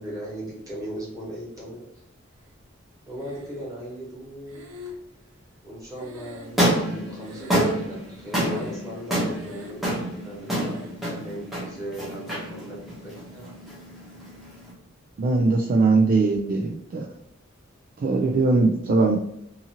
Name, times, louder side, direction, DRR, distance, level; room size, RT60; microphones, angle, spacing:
voice 1, 0.0-1.8 3.1-4.7 5.6-10.8 11.1-13.5, right 1 dB, 15° right, -6 dB, 1.3 m, -38 dB
Breathing, 3.2-3.9 4.5-6.9 7.2-8.0 8.4-9.0 9.3-9.9 10.5-11.0, left 3 dB, 80° right, 0.7 m, -44 dB
sound 1, 6.4-14.7, right 1 dB, ahead, 0.8 m, -28 dB
voice 2, 15.2-17.1 18.0-19.2, right 3 dB, 45° right, 0 dB, 0.3 m, -21 dB
2.8 x 2.5 x 2.7 m, 0.77 s
head